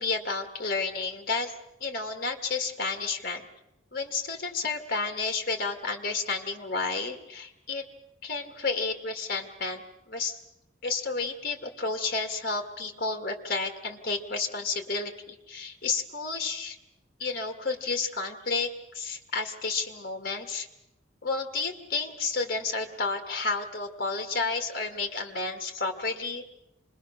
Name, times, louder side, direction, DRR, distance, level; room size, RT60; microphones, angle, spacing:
voice 1, 0.0-1.5 1.8-3.4 3.9-7.8 8.2-10.4 10.8-16.8 17.2-20.7 21.2-26.6, left 4 dB, 50° left, 5 dB, 2.0 m, -31 dB
29.0 x 21.0 x 6.5 m, 0.88 s
head